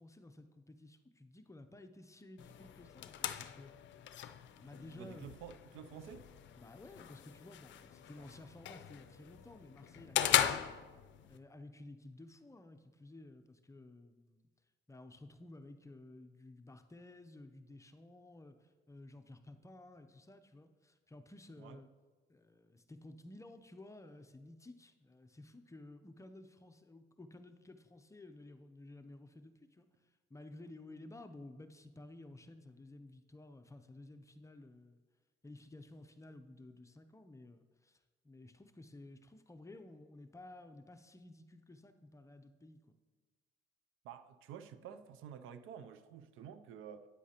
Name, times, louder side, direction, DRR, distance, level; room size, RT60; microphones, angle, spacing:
voice 1, 0.0-3.7 4.6-5.3 6.6-10.7 11.3-14.5 14.9-21.9 22.3-35.0 35.4-42.8, left 2 dB, 15° left, 0.5 m, -54 dB
sound 1, 2.4-11.4, left 11 dB, 70° left, 0.5 m, -38 dB
voice 2, 4.9-6.3 8.2-8.3 21.6-21.8 44.0-47.1, right 8 dB, 85° right, 0.5 m, -50 dB
9.7 x 8.1 x 2.9 m
cardioid pair, 90°, 20 cm